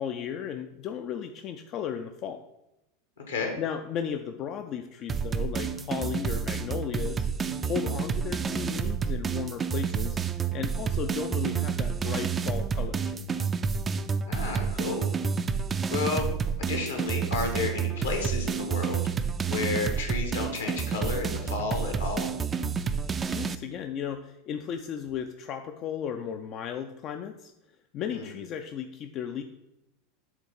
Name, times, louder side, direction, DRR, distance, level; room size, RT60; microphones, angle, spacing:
voice 1, 0.0-2.4 3.6-7.3 7.6-10.2 10.5-13.4 23.3-27.5 27.9-29.4, left 8 dB, 40° left, 7 dB, 0.4 m, -35 dB
voice 2, 3.2-3.5 14.3-15.1 15.9-16.3 16.6-19.0 19.5-22.3 28.1-28.3, left 4 dB, 75° left, 3 dB, 1.6 m, -31 dB
sound 1, 5.1-23.6, right 6 dB, 25° right, 0.4 m, -29 dB
7.2 x 3.8 x 5.3 m, 0.91 s
figure-of-eight pair, 85°, 0 cm